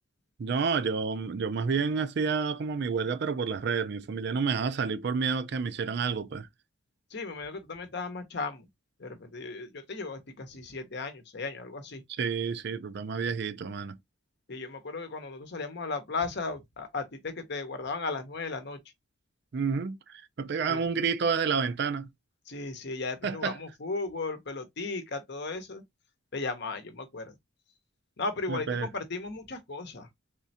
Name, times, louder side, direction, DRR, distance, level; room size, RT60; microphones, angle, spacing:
voice 1, 0.4-6.5 12.1-14.0 19.5-22.1 23.2-23.6 28.5-28.9, right 5 dB, 55° right, 0.4 m, -29 dB
voice 2, 7.1-8.7 9.0-12.0 14.5-18.8 20.7-20.8 22.5-25.8 26.3-27.3 28.2-30.1, left 3 dB, 55° left, 0.8 m, -36 dB
3.6 x 3.2 x 2.7 m
head